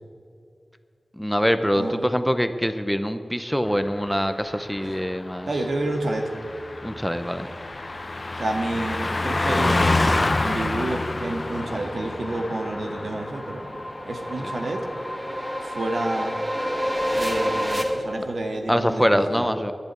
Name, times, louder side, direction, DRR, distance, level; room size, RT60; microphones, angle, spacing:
voice 1, 1.1-5.5 6.8-7.5 18.7-19.7, equal, 5° left, 9 dB, 0.7 m, -24 dB
Car passing by, 3.7-15.7 16.0-16.2, left 2 dB, 35° left, 0.6 m, -28 dB
voice 2, 5.5-6.3 8.3-9.9 10.4-13.7 14.0-14.9 15.6-16.4 17.1-19.5, right 2 dB, 75° right, 3 dB, 1.8 m, -29 dB
sound 1, 11.6-17.8, equal, 20° right, 2.1 m, -30 dB
11.5 x 11.0 x 9.0 m, 2.5 s
wide cardioid pair, 85°, 0 cm